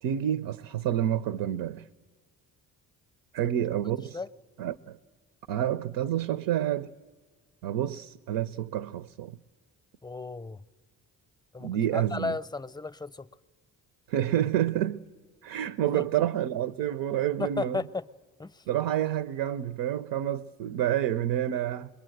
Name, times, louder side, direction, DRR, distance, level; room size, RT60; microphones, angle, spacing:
voice 1, 0.0-1.9 3.3-4.2 4.6-5.0 5.5-6.9 7.6-9.4 11.6-12.4 14.1-15.0 15.4-17.8 18.7-21.9, right 11 dB, 80° right, 0.6 m, -28 dB
voice 2, 10.0-10.6 11.5-13.3 15.9-16.0 17.4-18.1 18.4-18.6, left 3 dB, 10° left, 0.6 m, -34 dB
22.0 x 21.5 x 7.8 m
supercardioid pair, 60°, 41 cm